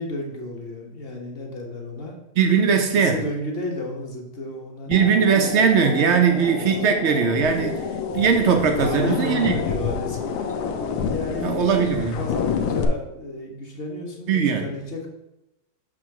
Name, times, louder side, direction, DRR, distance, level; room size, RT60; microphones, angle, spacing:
voice 1, 0.0-2.2 2.9-5.2 6.4-6.7 8.8-10.5 11.1-15.1, left 1 dB, 40° left, 0 dB, 1.1 m, -32 dB
voice 2, 2.4-3.2 4.9-7.8 8.1-9.5 11.4-12.2 14.3-14.7, right 6 dB, 85° right, 5 dB, 0.6 m, -20 dB
sound 1, 4.9-12.1, left 6 dB, 65° left, 1.2 m, -31 dB
sound 2, 7.4-12.9, left 6 dB, 90° left, 1.4 m, -29 dB
6.4 x 3.1 x 5.8 m, 0.93 s
omnidirectional pair, 2.0 m